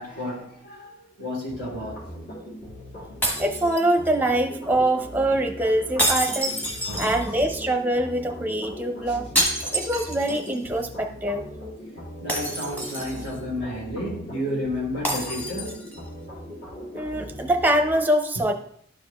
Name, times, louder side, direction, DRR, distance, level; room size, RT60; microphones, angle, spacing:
voice 1, 0.0-2.0 6.8-7.2 9.1-9.2 12.2-15.8, left 1 dB, 85° left, 2.9 m, -32 dB
sound 1, 1.5-18.0, equal, 65° left, 3.2 m, -40 dB
sound 2, 3.2-4.3 6.0-7.6 9.4-10.6 10.9-11.0 12.3-13.4 15.0-16.0, right 1 dB, 10° left, 1.2 m, -27 dB
voice 2, 3.4-6.6 7.0-9.3 9.7-11.5 16.9-18.5, right 1 dB, 10° right, 0.6 m, -24 dB
11.5 x 4.9 x 2.3 m
head